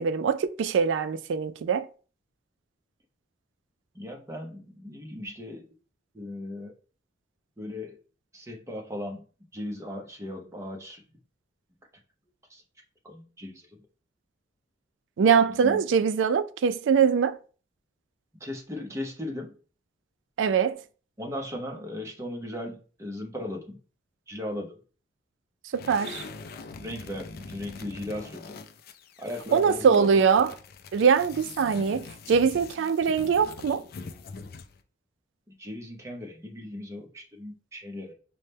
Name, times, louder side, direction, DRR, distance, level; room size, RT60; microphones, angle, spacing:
voice 1, 0.0-1.9 15.2-17.4 20.4-20.8 25.7-26.2 29.5-30.5 30.9-33.8, right 6 dB, 70° right, 0.3 m, -23 dB
voice 2, 3.9-5.8 6.1-6.7 7.6-8.0 8.3-9.3 9.5-11.0 12.5-12.6 13.0-13.7 15.5-15.9 18.4-19.6 21.2-23.8 24.3-24.8 26.8-28.6 29.2-30.2 35.5-38.1, left 1 dB, 15° right, 0.6 m, -37 dB
sound 1, 25.7-34.8, left 4 dB, 50° left, 0.3 m, -43 dB
5.4 x 2.1 x 3.3 m
head